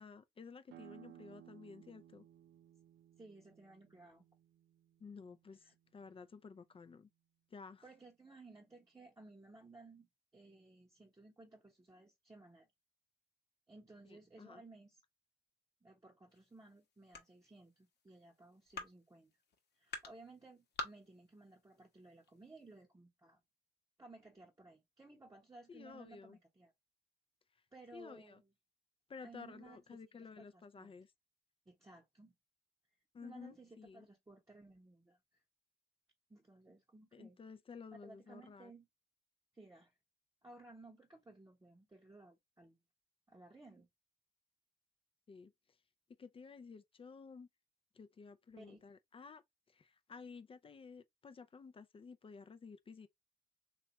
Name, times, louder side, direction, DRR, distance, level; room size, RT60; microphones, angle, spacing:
voice 1, 0.0-2.3 5.0-7.1 7.5-7.9 14.1-14.6 25.7-26.4 27.9-28.4 29.1-31.1 33.1-34.1 37.1-38.7 45.3-45.5 46.2-47.5 47.9-49.4 49.7-53.1, left 5 dB, 30° left, 0.4 m, -53 dB
sound 1, 0.7-6.1, right 12 dB, 75° right, 0.5 m, -60 dB
voice 2, 3.2-4.2 5.6-5.7 7.8-10.1 10.3-12.7 13.7-15.0 15.8-19.3 19.8-23.4 24.0-26.7 27.7-28.5 29.2-30.0 30.4-30.9 31.7-32.3 33.2-35.2 36.3-37.4 37.9-38.9 39.5-39.9 40.4-42.8 43.3-43.9 48.6-48.8, right 2 dB, 15° right, 1.0 m, -58 dB
sound 2, 16.3-22.8, left 3 dB, 60° left, 1.0 m, -51 dB
3.2 x 2.3 x 2.9 m
cardioid pair, 90°, 20 cm